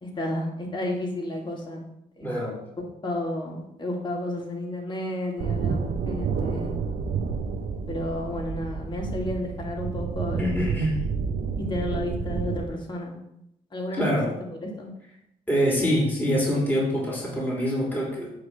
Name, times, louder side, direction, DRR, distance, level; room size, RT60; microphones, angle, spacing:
voice 1, 0.0-2.3 2.8-6.8 7.9-10.7 11.6-13.2 13.7-14.1 14.5-14.9, left 1 dB, 30° left, -2 dB, 2.5 m, -32 dB
voice 2, 2.2-2.6 10.4-11.0 14.0-14.3 15.5-18.3, equal, 10° left, -5 dB, 3.2 m, -25 dB
sound 1, 5.4-12.7, right 5 dB, 70° right, 0.9 m, -30 dB
8.4 x 3.3 x 6.3 m, 0.80 s
supercardioid pair, 55°, 16 cm